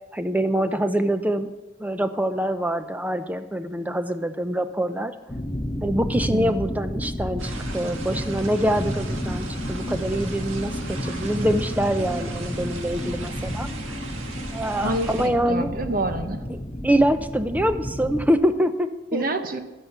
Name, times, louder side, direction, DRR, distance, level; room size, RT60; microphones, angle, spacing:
voice 1, 0.1-1.5 1.8-5.1 5.8-13.7 14.5-15.7 16.8-19.2, right 1 dB, 10° right, 9 dB, 0.6 m, -25 dB
sound 1, 5.3-18.3, equal, 20° left, 1.1 m, -31 dB
voice 2, 6.3-6.6 14.8-16.4 19.1-19.6, right 1 dB, 45° right, 7 dB, 1.1 m, -27 dB
sound 2, 7.4-15.3, right 3 dB, 85° right, 1.7 m, -38 dB
12.0 x 10.0 x 6.8 m, 1.1 s
head